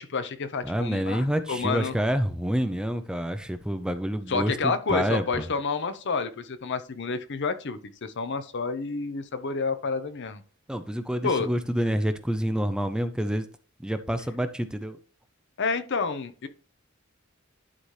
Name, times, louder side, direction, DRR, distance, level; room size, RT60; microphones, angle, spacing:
voice 1, 0.0-1.9 4.3-10.4 11.2-11.5 15.6-16.5, left 4 dB, 60° left, 0.7 m, -29 dB
voice 2, 0.6-5.4 10.7-13.5 13.8-15.0, equal, 5° right, 0.5 m, -28 dB
11.0 x 4.1 x 3.2 m
head